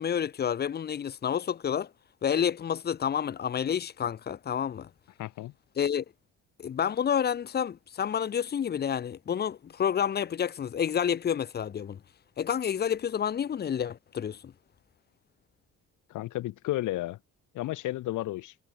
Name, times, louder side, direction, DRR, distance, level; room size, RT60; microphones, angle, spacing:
voice 1, 0.0-1.9 2.2-4.9 5.8-6.0 6.6-12.0 12.4-14.5, left 8 dB, 35° left, 0.6 m, -29 dB
voice 2, 5.2-5.5 16.1-17.2 17.5-18.6, left 16 dB, 80° left, 0.9 m, -32 dB
cardioid pair, 90°, 30 cm